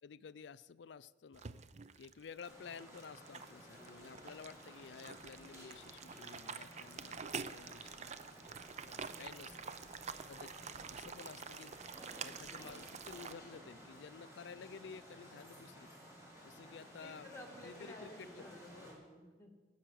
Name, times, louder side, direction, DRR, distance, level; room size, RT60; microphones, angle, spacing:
voice 1, 0.0-1.4 2.0-8.2 8.8-10.5 10.9-11.8 12.2-16.0 16.4-17.3 17.6-18.5, left 6 dB, 65° left, 16 dB, 0.4 m, -53 dB
sound 1, 1.3-13.3, right 6 dB, 35° right, 0.5 m, -48 dB
sound 2, 2.4-18.9, equal, 15° right, 4.3 m, -55 dB
voice 2, 17.0-19.6, left 1 dB, 15° left, 5 dB, 2.1 m, -54 dB
18.0 x 7.9 x 7.5 m, 1.4 s
head